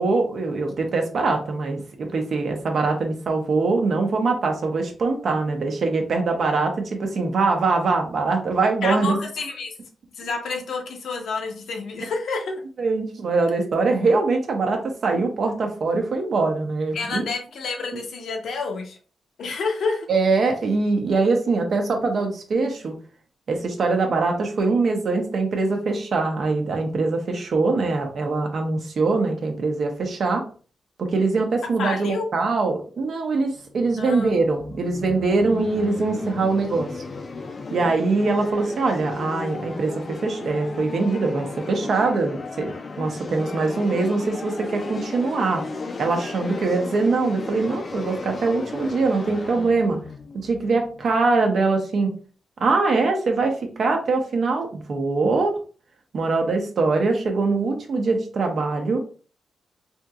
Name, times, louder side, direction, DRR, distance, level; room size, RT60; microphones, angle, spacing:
voice 1, 0.0-9.2 12.8-17.2 20.1-22.9 23.5-30.4 31.0-36.9 37.7-42.7 43.0-45.6 46.0-50.0 50.3-52.1 52.6-55.6 56.1-59.0, right 3 dB, 60° right, 3 dB, 0.8 m, -23 dB
voice 2, 8.8-9.7 10.2-12.6 16.9-19.0 19.4-20.1 31.8-32.3 34.0-34.3, left 4 dB, 80° left, 3 dB, 0.8 m, -29 dB
sound 1, 33.6-51.4, left 3 dB, 45° left, 0.5 m, -35 dB
3.6 x 2.8 x 2.3 m, 0.39 s
cardioid pair, 95°, 0 cm